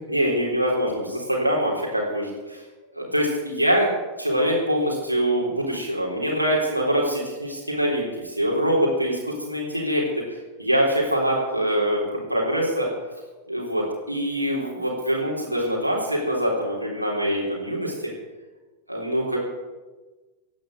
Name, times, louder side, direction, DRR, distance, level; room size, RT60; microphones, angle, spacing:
voice 1, 0.1-2.6 2.9-3.9 4.2-10.1 10.6-12.9 13.5-17.9 18.9-19.4, equal, 90° right, -3 dB, 3.7 m, -24 dB
17.0 x 10.5 x 7.8 m, 1.2 s
figure-of-eight pair, 90°, 0 cm